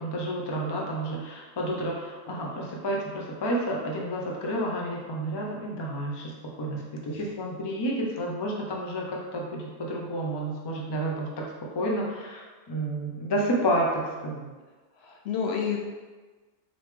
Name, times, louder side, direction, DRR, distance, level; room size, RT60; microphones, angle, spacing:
voice 1, 0.0-6.3 6.6-11.5 11.7-14.5, right 1 dB, 30° left, -2 dB, 0.4 m, -30 dB
voice 2, 15.0-15.8, left 6 dB, 65° left, 0 dB, 0.7 m, -30 dB
4.1 x 3.3 x 3.3 m, 1.3 s
omnidirectional pair, 1.3 m